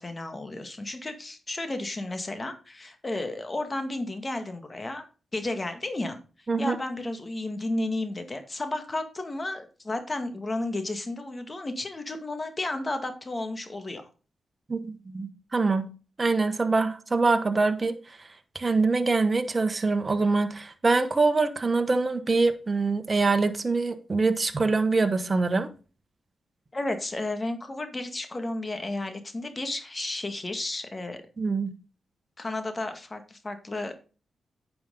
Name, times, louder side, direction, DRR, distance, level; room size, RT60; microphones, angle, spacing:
voice 1, 0.0-5.0 5.3-6.2 6.6-14.1 26.7-31.2 32.4-34.0, left 2 dB, 35° left, 1.9 m, -32 dB
voice 2, 14.7-15.9 16.2-17.9 18.5-25.7 31.4-31.7, right 3 dB, 40° right, 1.2 m, -24 dB
9.4 x 6.0 x 3.9 m
supercardioid pair, 45°, 0 cm